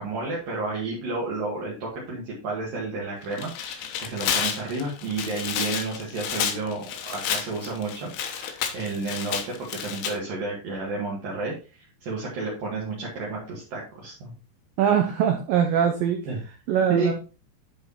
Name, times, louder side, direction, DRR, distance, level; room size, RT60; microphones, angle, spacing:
voice 1, 0.0-9.5 9.8-11.5 12.0-14.3 16.3-16.4 16.9-17.1, right 3 dB, 55° right, -5 dB, 3.3 m, -31 dB
Tearing, 3.2-10.1, left 8 dB, 85° left, 3.6 m, -30 dB
voice 2, 14.8-16.2 16.7-17.1, right 8 dB, 85° right, 5 dB, 2.0 m, -22 dB
10.5 x 4.8 x 4.2 m, 0.33 s
omnidirectional pair, 5.3 m